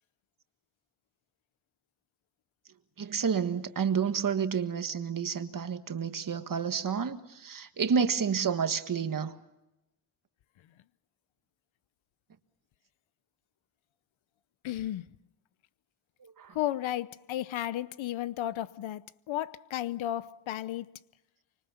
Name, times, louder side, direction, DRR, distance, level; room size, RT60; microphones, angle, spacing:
voice 1, 3.0-9.4 16.4-16.5, right 6 dB, 45° right, 1.7 m, -30 dB
voice 2, 14.6-15.1 16.5-20.9, left 13 dB, 85° left, 0.8 m, -33 dB
25.5 x 25.0 x 7.1 m
cardioid pair, 100°, 46 cm